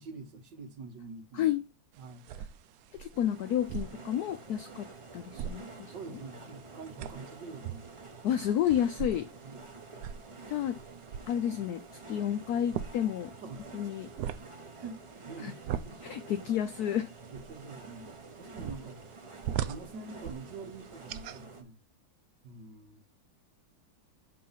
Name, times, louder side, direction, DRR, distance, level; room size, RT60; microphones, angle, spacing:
voice 1, 0.0-1.5 2.0-2.3 5.9-7.9 9.4-9.6 13.4-13.9 14.7-16.2 17.3-21.8 22.4-23.0, right 4 dB, 65° right, 1.7 m, -46 dB
sound 1, 1.9-21.4, right 9 dB, 80° right, 0.8 m, -43 dB
voice 2, 3.0-5.9 8.2-9.3 10.5-10.8 11.3-11.8 12.1-13.3 13.7-14.1 15.4-15.5 16.0-17.1, left 10 dB, 80° left, 0.8 m, -30 dB
sound 2, 3.1-21.6, right 3 dB, 30° right, 0.6 m, -49 dB
6.8 x 3.2 x 5.4 m
omnidirectional pair, 2.2 m